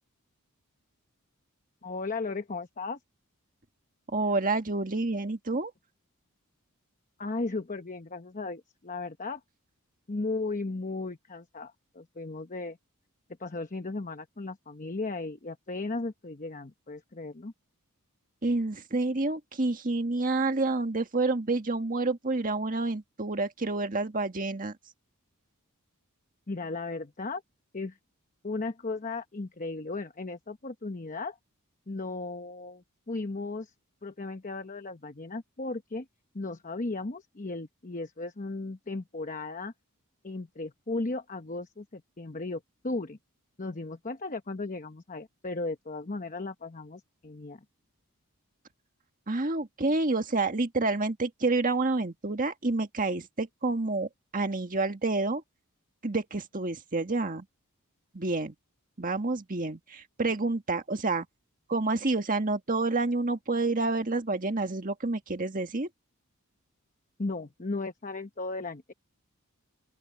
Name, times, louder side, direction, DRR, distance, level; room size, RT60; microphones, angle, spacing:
voice 1, 1.8-3.0 7.2-9.4 10.1-12.8 13.4-17.5 26.5-27.4 27.7-28.0 28.4-31.4 31.9-33.7 34.0-36.1 36.3-39.7 40.2-43.2 43.6-47.6 67.2-68.9, left 3 dB, 35° left, 1.0 m, -36 dB
voice 2, 4.1-5.7 18.4-24.8 49.3-55.4 56.0-57.4 58.1-58.5 59.0-61.3 61.7-65.9, right 3 dB, 40° right, 1.7 m, -28 dB
open air
head